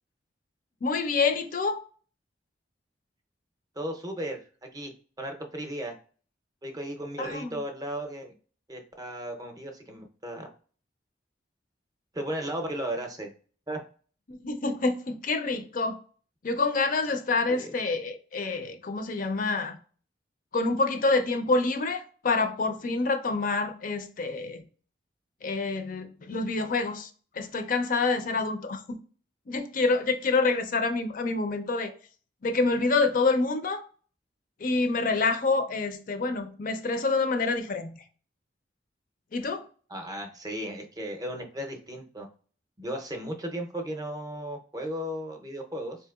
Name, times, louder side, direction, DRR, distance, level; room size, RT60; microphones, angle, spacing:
voice 1, 0.8-1.8 7.2-7.6 14.3-16.0 16.4-19.8 20.5-24.6 25.4-27.1 27.3-29.0 29.5-31.9 32.4-33.8 34.6-38.0 39.3-39.6, left 3 dB, 50° left, 0.5 m, -27 dB
voice 2, 3.8-4.9 5.2-6.0 6.6-8.3 8.7-10.5 12.1-13.3 13.7-13.8 17.5-17.7 39.9-42.3 42.8-46.0, right 1 dB, 20° right, 0.6 m, -35 dB
4.3 x 2.8 x 2.3 m
head